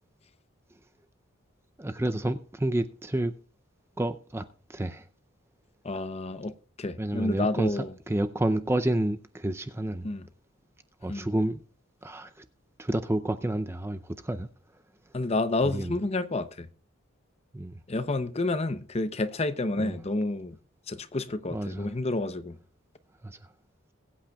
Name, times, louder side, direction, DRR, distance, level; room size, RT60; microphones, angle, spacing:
voice 1, 1.8-3.3 4.0-4.4 4.7-5.0 7.0-10.1 11.0-11.6 12.0-12.5 12.8-14.5 15.6-16.0 17.5-17.8 19.8-20.0 21.5-21.9 23.2-23.4, right 1 dB, 10° right, 0.5 m, -29 dB
voice 2, 5.8-7.9 10.0-10.3 11.1-11.3 15.1-16.7 17.9-20.6 20.9-22.6, left 2 dB, 30° left, 0.7 m, -29 dB
21.0 x 8.7 x 2.3 m
head